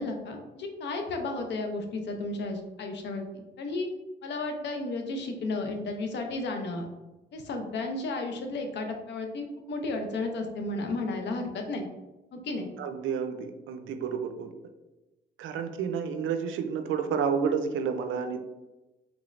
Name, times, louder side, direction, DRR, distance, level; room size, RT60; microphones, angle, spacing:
voice 1, 0.0-3.9 4.2-6.8 7.3-11.9 12.3-12.7, left 2 dB, 65° left, 4 dB, 0.6 m, -33 dB
voice 2, 12.8-14.5 15.4-18.4, right 6 dB, 80° right, 8 dB, 0.5 m, -30 dB
3.4 x 3.2 x 2.5 m, 1.1 s
cardioid pair, 90°, 20 cm